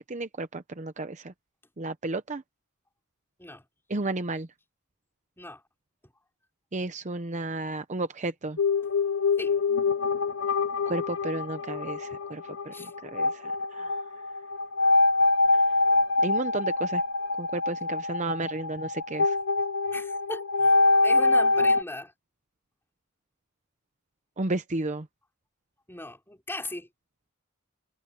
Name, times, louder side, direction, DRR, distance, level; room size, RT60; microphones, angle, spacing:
voice 1, 0.0-1.3 1.8-2.4 3.9-4.5 6.7-8.6 10.9-12.8 13.0-14.0 16.2-17.0 17.4-19.4 24.4-25.1, right 2 dB, 35° right, 0.8 m, -33 dB
sound 1, 8.6-21.8, left 3 dB, 65° left, 0.8 m, -25 dB
voice 2, 19.9-20.7 21.0-22.1 25.9-26.9, left 2 dB, 10° left, 5.5 m, -38 dB
head